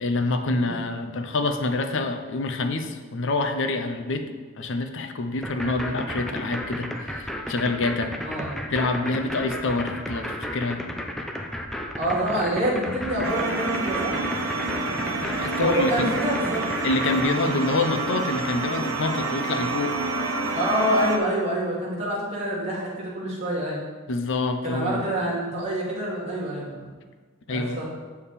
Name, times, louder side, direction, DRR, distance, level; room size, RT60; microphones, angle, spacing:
voice 1, 0.0-4.3 4.6-8.1 8.7-10.9 15.2-16.1 16.8-20.0 24.1-25.0 27.5-27.8, left 3 dB, 60° left, 6 dB, 0.7 m, -26 dB
sound 1, 5.4-17.3, equal, ahead, 0.6 m, -33 dB
voice 2, 12.0-14.1 15.6-16.7 17.2-17.6 20.5-23.8 24.6-26.8 27.5-27.8, right 1 dB, 30° right, -6 dB, 2.4 m, -26 dB
sound 2, 13.2-21.2, right 3 dB, 85° right, 1.0 m, -28 dB
7.3 x 7.0 x 4.2 m, 1.4 s
head